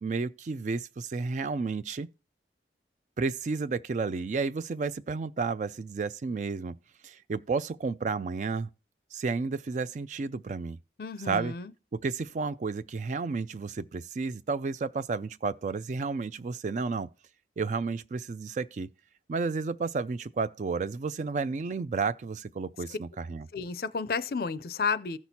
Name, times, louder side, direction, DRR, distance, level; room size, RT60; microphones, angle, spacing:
voice 1, 0.0-2.1 3.2-6.7 7.0-8.7 9.1-10.8 11.2-11.5 11.9-17.1 17.6-18.9 19.3-23.5, right 4 dB, 40° right, 0.3 m, -32 dB
voice 2, 11.0-11.7 23.5-25.2, left 5 dB, 55° left, 0.4 m, -31 dB
15.0 x 6.0 x 2.8 m
head